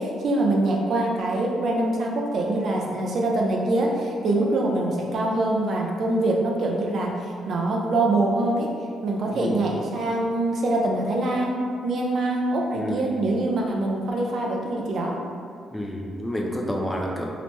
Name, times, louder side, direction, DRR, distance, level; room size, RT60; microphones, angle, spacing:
voice 1, 0.0-8.7 9.0-15.2, right 2 dB, 60° right, -1 dB, 0.4 m, -24 dB
voice 2, 9.3-9.8 12.7-13.2 15.7-17.3, equal, 5° left, -1 dB, 0.4 m, -29 dB
2.8 x 2.1 x 3.1 m, 2.2 s
cardioid pair, 90°, 0 cm